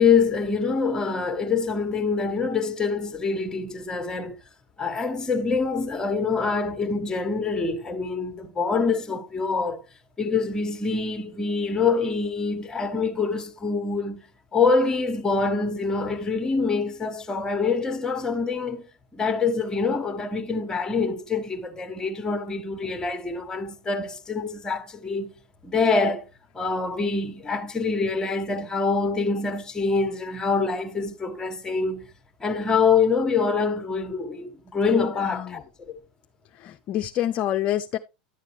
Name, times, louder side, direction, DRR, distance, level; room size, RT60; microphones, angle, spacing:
voice 1, 0.0-4.4 4.8-9.8 10.2-14.3 14.5-18.9 19.1-25.3 25.6-26.3 26.5-32.1 32.4-36.0, left 4 dB, 15° left, 1.5 m, -25 dB
voice 2, 35.2-35.6 36.6-38.0, left 12 dB, 45° left, 0.6 m, -27 dB
10.5 x 7.4 x 3.2 m
hypercardioid pair, 95°, 4 cm